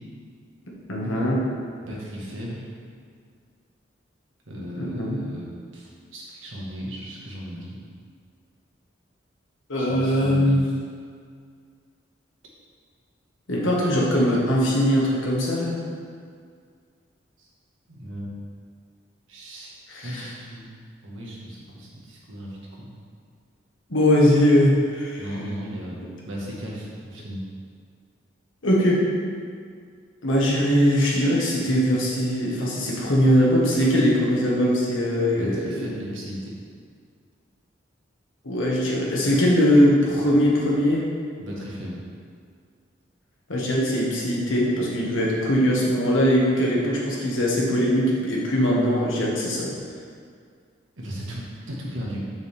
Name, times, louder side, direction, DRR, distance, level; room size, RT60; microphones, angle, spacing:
voice 1, 0.9-1.4 4.8-5.2 9.7-10.7 13.5-15.8 19.9-20.3 23.9-25.2 28.6-29.0 30.2-35.9 38.4-41.0 43.5-49.7, equal, 85° left, -4 dB, 1.5 m, -21 dB
voice 2, 1.9-2.6 4.5-7.8 9.8-10.6 17.4-17.5 17.9-18.3 19.3-19.7 20.0-20.7 21.0-22.9 25.2-27.4 35.3-36.5 41.4-42.0 51.0-52.2, equal, 85° right, -4 dB, 1.6 m, -36 dB
6.8 x 6.2 x 3.5 m, 2.1 s
head